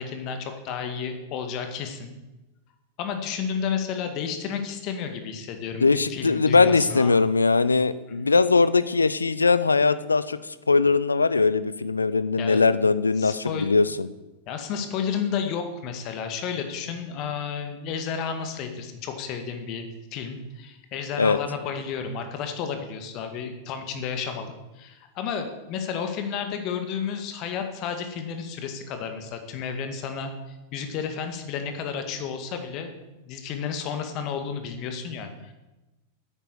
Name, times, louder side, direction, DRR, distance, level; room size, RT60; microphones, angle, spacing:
voice 1, 0.0-2.1 3.0-7.2 8.2-8.4 12.4-12.6 13.2-13.7 14.5-19.9 20.1-32.9 33.2-35.5, left 6 dB, 40° left, 6 dB, 1.9 m, -32 dB
voice 2, 5.8-14.1 21.2-21.4, left 4 dB, 80° left, 15 dB, 0.6 m, -21 dB
10.0 x 9.1 x 8.0 m, 1.1 s
figure-of-eight pair, 90°, 0 cm